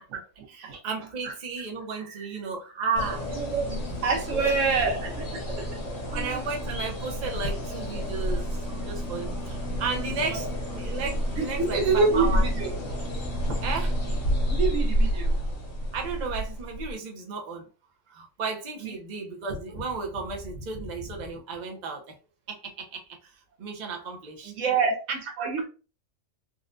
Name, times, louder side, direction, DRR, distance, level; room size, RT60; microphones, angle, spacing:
voice 1, 0.0-3.3 4.3-4.9 5.5-5.6 6.1-12.5 13.2-14.0 15.9-17.7 18.1-22.2 22.5-23.3 23.6-24.5 25.1-25.7, right 4 dB, 45° right, 0.7 m, -34 dB
sound 1, 2.9-16.9, equal, 80° left, 1.5 m, -30 dB
voice 2, 3.3-3.7 4.0-5.6 6.1-6.4 8.7-8.8 10.2-10.5 11.4-12.7 14.5-15.3 18.8-18.9 24.6-24.9 25.4-25.7, right 4 dB, 90° right, 1.1 m, -26 dB
3.9 x 2.2 x 2.5 m
omnidirectional pair, 1.3 m